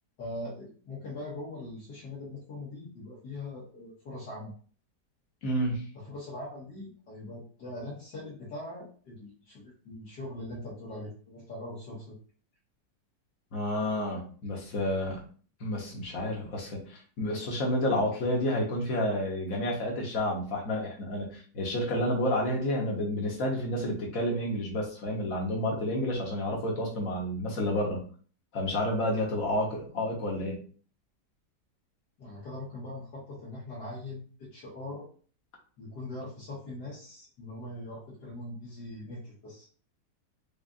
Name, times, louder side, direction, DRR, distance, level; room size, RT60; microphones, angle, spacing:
voice 1, 0.2-4.5 6.0-12.2 32.2-35.1 35.8-39.7, left 2 dB, 75° left, -7 dB, 1.9 m, -41 dB
voice 2, 5.4-5.8 13.5-15.2 15.6-28.0 28.5-30.6, left 1 dB, 55° left, -1 dB, 1.3 m, -30 dB
5.1 x 2.5 x 2.4 m, 0.43 s
omnidirectional pair, 1.8 m